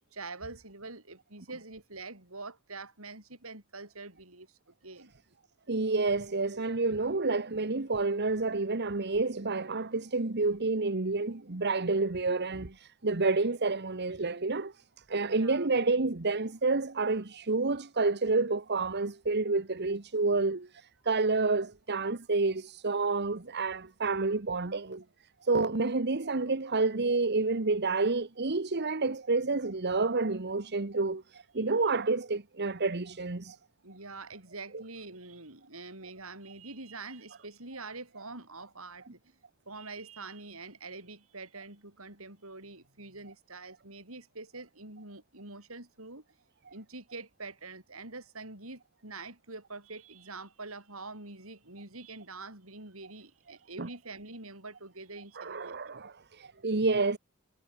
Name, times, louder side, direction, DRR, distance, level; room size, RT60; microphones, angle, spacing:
voice 1, 0.1-5.1 15.2-15.7 33.8-39.4 39.7-46.2 46.7-56.0, right 3 dB, 70° right, 7.4 m, -45 dB
voice 2, 5.7-14.7 15.1-25.0 25.4-33.6 34.7-34.8 39.1-39.2 53.8-53.9 55.4-57.2, right 3 dB, 50° right, 1.3 m, -29 dB
head